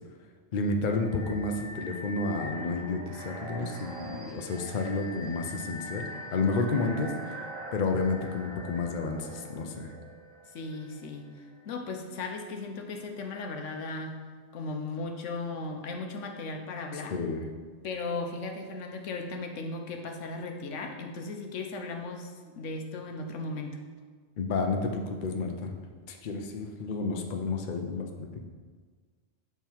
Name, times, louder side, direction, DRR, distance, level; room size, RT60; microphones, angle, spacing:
voice 1, 0.5-7.4 7.7-9.9 17.1-17.5 24.4-25.7 26.1-28.4, left 3 dB, 50° left, 3 dB, 0.6 m, -31 dB
sound 1, 0.8-11.6, equal, 85° right, 1.2 m, -43 dB
voice 2, 10.5-11.3 11.6-14.1 14.5-17.2 17.8-23.8, left 3 dB, 75° left, 3 dB, 1.0 m, -36 dB
7.4 x 3.5 x 4.4 m, 1.5 s
omnidirectional pair, 1.3 m